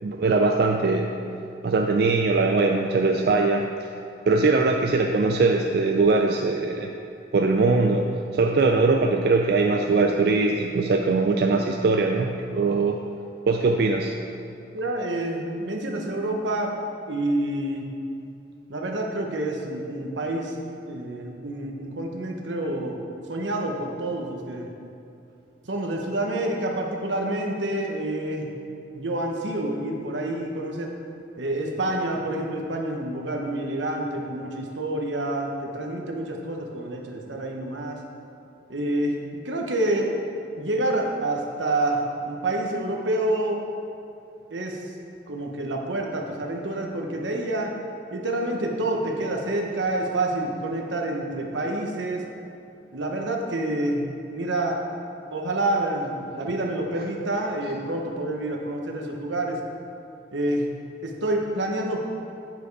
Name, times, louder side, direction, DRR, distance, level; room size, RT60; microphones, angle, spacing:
voice 1, 0.0-1.1 1.6-3.7 4.3-6.9 7.3-13.0 13.5-14.2, right 3 dB, 55° right, 2 dB, 0.4 m, -21 dB
voice 2, 14.7-16.7 17.1-17.9 18.7-20.6 20.8-23.0 23.3-24.7 25.7-28.5 28.9-30.9 31.4-38.0 38.7-40.2 40.6-43.6 44.5-44.8 45.3-47.7 48.1-52.2 52.9-54.8 55.3-59.6 60.3-60.7 61.0-62.0, right 1 dB, 80° right, 1 dB, 1.0 m, -28 dB
9.0 x 5.1 x 4.7 m, 2.7 s
head